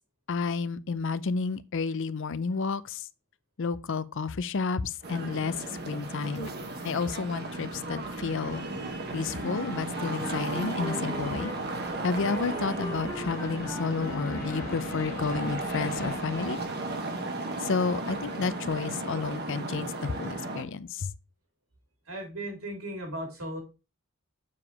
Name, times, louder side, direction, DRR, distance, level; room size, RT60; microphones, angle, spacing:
voice 1, 0.3-3.0 3.6-5.5 5.9-6.5 6.8-8.6 9.1-11.5 12.0-16.6 17.6-21.1, left 4 dB, 60° left, 0.5 m, -31 dB
sound 1, 5.0-16.6, left 2 dB, 45° left, 1.5 m, -45 dB
sound 2, 5.0-20.6, right 2 dB, 50° right, 1.3 m, -35 dB
Wind instrument woodwind instrument, 9.4-15.1, equal, 10° left, 0.8 m, -41 dB
voice 2, 22.1-23.6, right 1 dB, 75° right, 3.7 m, -36 dB
7.2 x 4.9 x 4.7 m
head